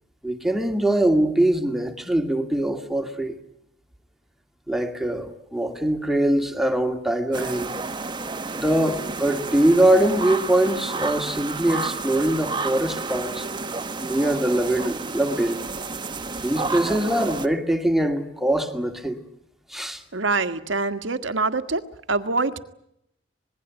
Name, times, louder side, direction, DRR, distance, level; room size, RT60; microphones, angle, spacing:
voice 1, 0.2-3.4 4.7-7.7 8.5-13.5 14.0-15.6 16.4-19.2 19.7-20.0, right 1 dB, ahead, 2.3 m, -22 dB
sound 1, 7.3-17.5, right 3 dB, 25° right, 1.3 m, -31 dB
voice 2, 20.1-21.8 22.1-22.6, right 3 dB, 85° right, 1.6 m, -24 dB
26.5 x 21.0 x 8.2 m
head